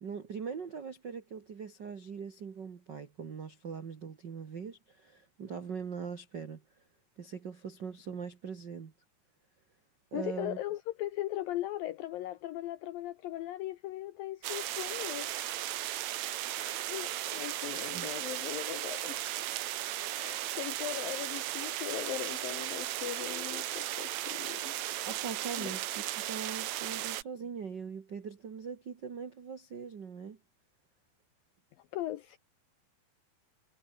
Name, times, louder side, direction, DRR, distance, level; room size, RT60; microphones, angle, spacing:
voice 1, 0.0-6.6 7.2-8.9 10.1-10.6 17.9-18.1 25.0-30.4, right 6 dB, 55° right, 1.2 m, -41 dB
voice 2, 10.1-15.7 16.6-19.4 20.1-24.7 25.6-25.7 31.9-32.4, left 15 dB, 75° left, 2.4 m, -39 dB
sound 1, 14.4-27.2, right 14 dB, 90° right, 1.5 m, -36 dB
omnidirectional pair, 4.7 m